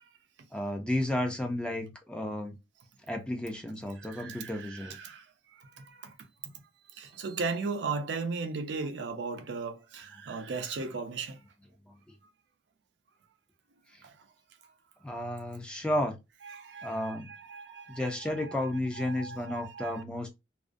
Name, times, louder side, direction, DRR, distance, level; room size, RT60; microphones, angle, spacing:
voice 1, 0.5-2.6 3.1-5.0 11.9-12.0 13.9-14.0 15.0-16.1 16.8-17.3 17.9-20.3, left 1 dB, 5° left, 0.4 m, -32 dB
voice 2, 4.0-5.2 5.6-6.1 7.0-11.4 14.0-14.1 16.5-18.6 19.0-20.0, right 4 dB, 70° right, 0.4 m, -37 dB
2.4 x 2.1 x 2.5 m
head